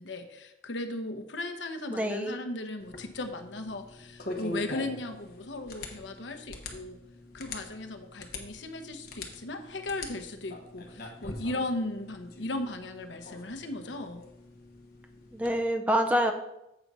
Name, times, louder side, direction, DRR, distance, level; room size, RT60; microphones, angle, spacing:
voice 1, 0.0-7.0 7.3-14.2, left 2 dB, 75° left, 6 dB, 0.9 m, -37 dB
voice 2, 1.9-2.4 15.3-16.3, equal, 10° right, 4 dB, 0.5 m, -26 dB
sound 1, 2.8-15.6, left 2 dB, 50° left, 1.1 m, -43 dB
7.8 x 4.0 x 6.0 m, 0.87 s
head